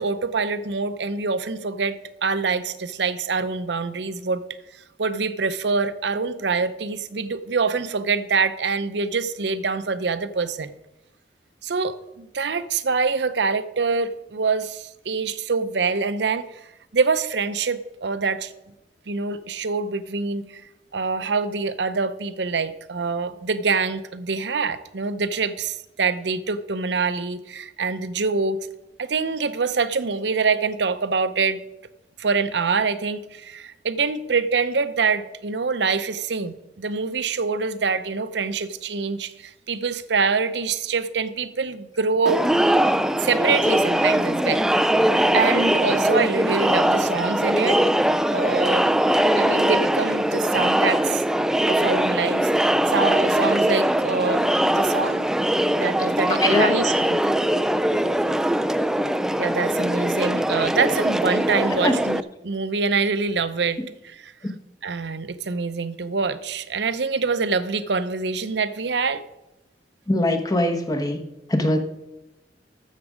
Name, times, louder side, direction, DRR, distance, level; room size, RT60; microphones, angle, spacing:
voice 1, 0.0-4.4 4.7-10.7 11.6-16.6 16.9-18.5 19.1-20.6 20.9-28.6 29.0-31.6 32.2-42.4 43.2-44.6 45.3-47.8 48.3-48.9 49.3-51.2 51.7-55.3 55.8-57.2 59.4-64.3 64.8-69.2, right 4 dB, 80° right, 13 dB, 0.7 m, -25 dB
Crowd, 42.3-62.2, right 1 dB, 5° right, 0.3 m, -21 dB
voice 2, 56.3-56.7 61.8-61.9 64.4-64.5 70.1-71.2 71.5-71.8, left 2 dB, 20° left, 4 dB, 1.2 m, -21 dB
13.5 x 7.5 x 5.0 m, 0.95 s
head